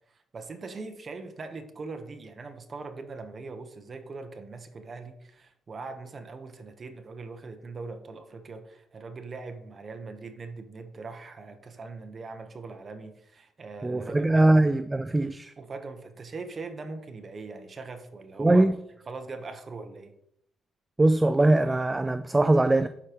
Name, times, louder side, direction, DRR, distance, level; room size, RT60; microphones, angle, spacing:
voice 1, 0.1-14.6 15.6-18.6 19.1-20.1, right 3 dB, 40° right, 1.0 m, -41 dB
voice 2, 13.8-15.5 18.4-18.7 21.0-22.9, right 2 dB, 15° right, 0.3 m, -21 dB
11.0 x 4.9 x 3.0 m
cardioid pair, 90°, 0 cm